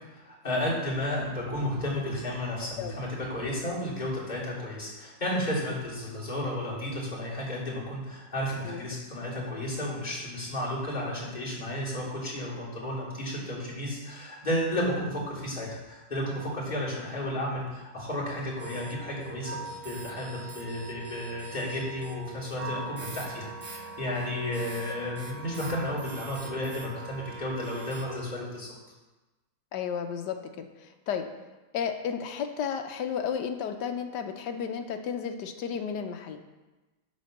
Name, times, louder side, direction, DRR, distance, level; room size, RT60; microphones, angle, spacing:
voice 1, 0.1-19.6 19.8-28.7, left 1 dB, 20° left, -8 dB, 3.4 m, -33 dB
voice 2, 8.6-8.9 29.7-31.3 31.7-36.4, left 7 dB, 65° left, 6 dB, 1.2 m, -33 dB
sound 1, 18.6-28.2, right 3 dB, 45° right, 1.2 m, -42 dB
9.5 x 4.3 x 6.6 m, 1.1 s
omnidirectional pair, 2.2 m